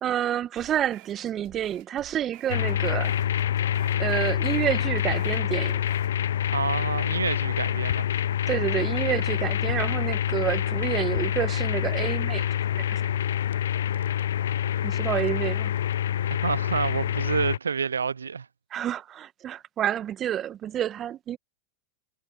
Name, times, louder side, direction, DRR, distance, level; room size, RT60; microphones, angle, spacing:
voice 1, 0.0-3.1 4.0-5.8 8.5-12.5 12.7-12.8 14.8-15.7 18.7-21.4, right 10 dB, 30° right, 1.0 m, -29 dB
sound 1, 0.6-6.2, right 30 dB, 50° right, 6.4 m, -50 dB
sound 2, 2.5-17.6, left 10 dB, 70° left, 0.4 m, -26 dB
voice 2, 6.5-8.1 16.4-18.5, right 6 dB, 80° right, 0.5 m, -28 dB
figure-of-eight pair, 95°, 0 cm